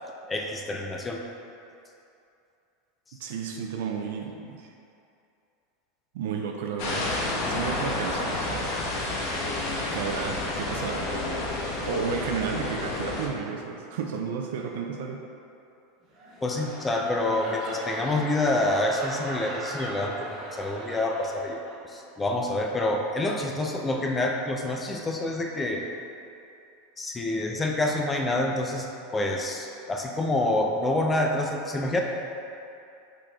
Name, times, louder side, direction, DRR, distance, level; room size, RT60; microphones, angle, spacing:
voice 1, 0.3-1.2 16.4-25.8 27.0-32.0, left 2 dB, 15° left, 1 dB, 0.4 m, -27 dB
voice 2, 3.2-4.7 6.1-7.1 7.5-8.7 9.6-11.1 11.8-15.2, right 6 dB, 75° right, 2 dB, 0.4 m, -32 dB
sound 1, 6.8-13.3, left 2 dB, 60° left, 0.8 m, -30 dB
sound 2, 16.0-22.0 22.4-22.7, right 1 dB, 40° right, 0.9 m, -39 dB
5.0 x 4.3 x 2.4 m, 2.6 s
supercardioid pair, 125°, 0 cm